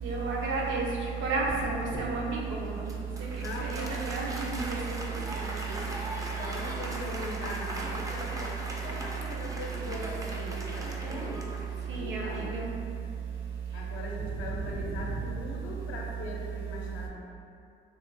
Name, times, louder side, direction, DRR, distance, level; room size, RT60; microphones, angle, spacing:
voice 1, 0.0-0.9 1.2-2.7 3.6-5.2 11.9-12.7, right 3 dB, 75° right, -3 dB, 0.6 m, -31 dB
Applause, 2.6-12.2, right 1 dB, 15° right, 0.3 m, -39 dB
voice 2, 3.4-4.0 6.4-11.6 12.0-12.4 13.7-17.1, left 2 dB, 85° left, -1 dB, 0.5 m, -40 dB
3.0 x 2.2 x 2.5 m, 2.5 s
cardioid pair, 90°, 20 cm